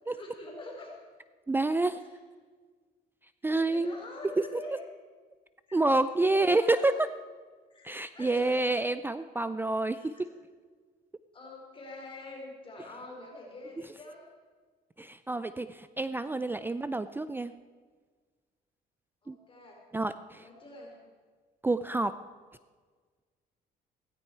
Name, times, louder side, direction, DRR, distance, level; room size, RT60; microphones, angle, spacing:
voice 1, 0.0-0.9 1.7-2.1 3.4-4.8 5.7-5.8 6.2-7.0 7.7-8.6 9.9-10.2 11.3-14.3 19.2-19.8 20.3-21.0, left 2 dB, 30° left, -1 dB, 4.0 m, -46 dB
voice 2, 1.5-2.0 3.4-4.0 5.7-6.9 7.8-10.2 15.0-17.5 19.3-19.4 19.9-20.5 21.6-22.2, right 2 dB, 10° right, 13 dB, 0.4 m, -28 dB
16.5 x 14.5 x 4.5 m, 1.5 s
cardioid pair, 110°, 17 cm